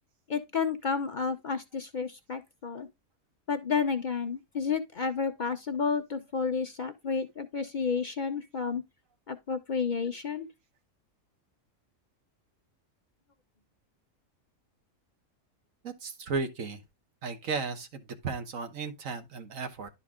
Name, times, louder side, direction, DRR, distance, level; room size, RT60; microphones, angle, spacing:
voice 1, 0.3-2.9 3.5-8.8 9.3-10.5, left 5 dB, 45° left, 0.7 m, -31 dB
voice 2, 15.8-16.8 17.2-17.9 18.2-19.9, right 4 dB, 80° right, 1.5 m, -34 dB
11.5 x 4.3 x 3.6 m
omnidirectional pair, 1.4 m